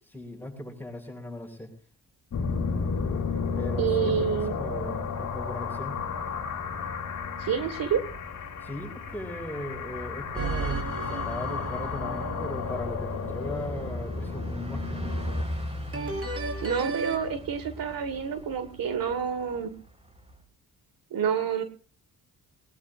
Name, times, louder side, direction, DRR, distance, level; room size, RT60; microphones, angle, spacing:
voice 1, 0.1-1.7 3.6-6.0 8.6-15.3, left 1 dB, 5° left, 0 dB, 7.9 m, -38 dB
sound 1, 2.3-15.4, left 5 dB, 55° left, 2.6 m, -33 dB
Bus, 3.3-20.4, equal, 20° right, 4.7 m, -41 dB
voice 2, 3.8-4.6 7.4-8.0 16.6-19.7 21.1-21.6, right 7 dB, 70° right, 8 dB, 1.9 m, -28 dB
sound 2, 10.3-13.4 15.9-17.2, right 3 dB, 40° right, 5.4 m, -34 dB
21.0 x 20.5 x 2.6 m, 0.39 s
cardioid pair, 95°, 35 cm